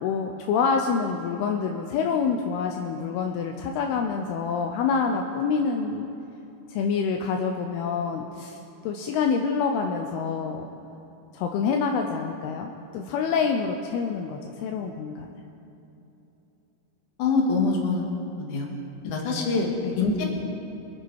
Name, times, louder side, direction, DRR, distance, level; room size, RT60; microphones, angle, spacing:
voice 1, 0.0-6.1 6.7-10.7 11.3-15.3 19.1-19.2 19.8-19.9, left 5 dB, 80° left, 3 dB, 2.6 m, -27 dB
voice 2, 17.2-18.0 18.4-18.7 19.0-19.7 20.0-20.2, left 3 dB, 55° left, 0 dB, 3.0 m, -24 dB
25.0 x 9.1 x 4.7 m, 2.9 s
omnidirectional pair, 4.7 m